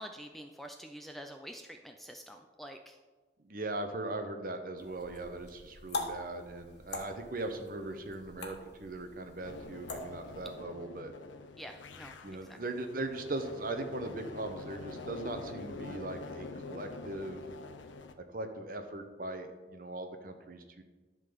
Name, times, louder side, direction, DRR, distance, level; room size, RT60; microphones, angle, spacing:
voice 1, 0.0-3.0 11.6-12.6, equal, ahead, 4 dB, 0.4 m, -47 dB
voice 2, 3.4-11.1 12.2-17.4 18.3-20.8, right 2 dB, 45° right, 6 dB, 0.9 m, -39 dB
sound 1, 4.8-10.6, left 3 dB, 60° left, 1.4 m, -43 dB
sound 2, 9.4-18.1, left 3 dB, 80° left, 0.7 m, -46 dB
11.0 x 3.9 x 6.9 m, 1.3 s
head